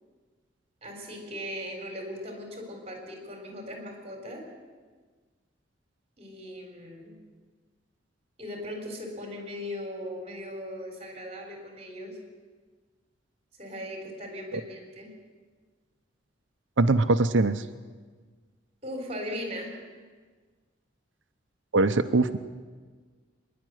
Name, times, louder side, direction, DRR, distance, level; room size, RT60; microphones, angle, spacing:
voice 1, 0.8-4.4 6.2-7.2 8.4-12.2 13.6-15.1 18.8-19.8, equal, 35° right, 2 dB, 4.0 m, -38 dB
voice 2, 16.8-17.6 21.7-22.4, right 2 dB, 80° right, 10 dB, 0.8 m, -22 dB
25.5 x 11.0 x 9.4 m, 1.5 s
head